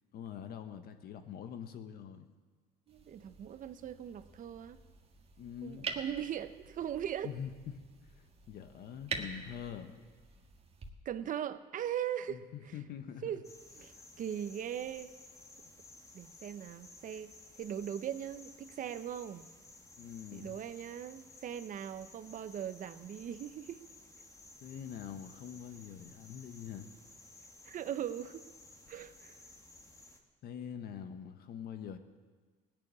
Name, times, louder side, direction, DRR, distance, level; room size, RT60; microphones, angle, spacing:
voice 1, 0.1-2.3 5.4-5.9 7.2-7.5 8.5-10.0 12.3-13.4 20.0-20.6 24.6-26.9 30.4-32.0, left 8 dB, 65° left, 8 dB, 1.3 m, -44 dB
sound 1, 2.9-10.9, right 4 dB, 35° right, 1.7 m, -46 dB
voice 2, 2.9-4.8 5.6-7.3 11.0-12.7 13.2-13.4 13.7-15.1 16.1-17.3 17.6-19.5 20.3-23.8 27.6-28.4 28.9-29.4, right 10 dB, 50° right, 13 dB, 0.8 m, -40 dB
sound 2, 13.4-30.2, left 2 dB, 20° left, 1.7 m, -56 dB
17.5 x 6.9 x 9.7 m, 1.4 s
cardioid pair, 110°, 17 cm